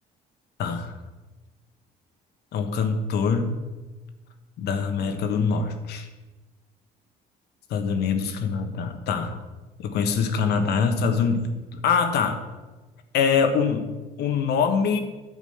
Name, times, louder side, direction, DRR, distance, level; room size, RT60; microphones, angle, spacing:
voice 1, 0.6-0.9 2.5-3.6 4.6-6.1 7.7-9.4 9.8-12.4 13.1-13.9 14.2-15.0, left 5 dB, 75° left, 6 dB, 1.3 m, -24 dB
9.3 x 5.1 x 7.9 m, 1.2 s
cardioid pair, 110°, 17 cm